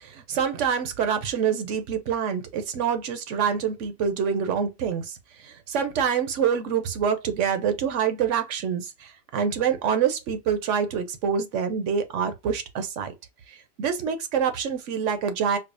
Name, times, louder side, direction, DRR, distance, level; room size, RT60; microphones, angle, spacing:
voice 1, 0.0-13.1 13.5-15.6, right 7 dB, 75° right, 1.0 m, -26 dB
4.7 x 2.1 x 2.5 m
omnidirectional pair, 1.3 m